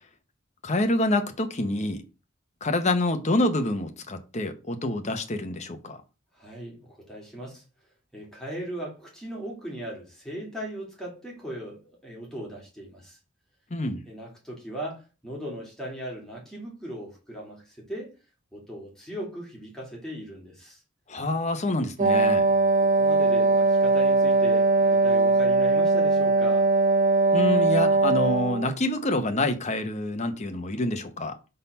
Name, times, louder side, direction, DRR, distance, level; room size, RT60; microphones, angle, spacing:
voice 1, 0.6-2.0 2.6-6.0 13.7-14.0 21.1-22.5 27.3-31.4, left 1 dB, 35° left, 0.9 m, -27 dB
voice 2, 6.3-7.6 8.1-13.2 14.0-18.1 18.5-20.8 22.5-26.7, right 1 dB, 5° left, 2.5 m, -38 dB
Wind instrument woodwind instrument, 22.0-28.8, right 3 dB, 40° right, 0.5 m, -21 dB
5.6 x 4.0 x 5.3 m
head